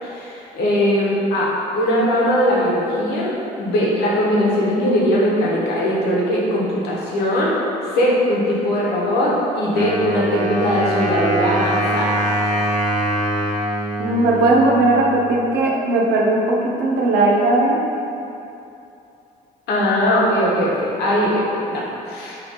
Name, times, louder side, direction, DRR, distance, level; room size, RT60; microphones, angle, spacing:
voice 1, 0.0-7.5 7.9-12.2 19.7-22.4, equal, 80° left, -5 dB, 1.0 m, -20 dB
Wind instrument woodwind instrument, 9.7-15.4, right 1 dB, 45° right, 0.6 m, -23 dB
voice 2, 14.0-17.8, right 2 dB, 85° right, -2 dB, 0.6 m, -17 dB
3.5 x 3.1 x 3.9 m, 2.8 s
cardioid pair, 80°, 17 cm